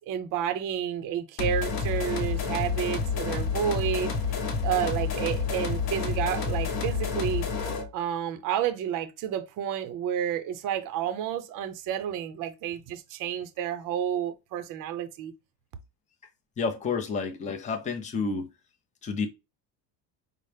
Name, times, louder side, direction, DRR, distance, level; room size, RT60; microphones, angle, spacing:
voice 1, 0.1-4.1 4.6-7.4 7.9-15.3, right 9 dB, 45° right, 0.5 m, -30 dB
sound 1, 1.4-7.9, left 5 dB, 50° left, 0.9 m, -29 dB
voice 2, 16.6-18.5 19.0-19.3, left 5 dB, 15° left, 0.4 m, -30 dB
5.4 x 2.0 x 3.2 m
cardioid pair, 165°, 47 cm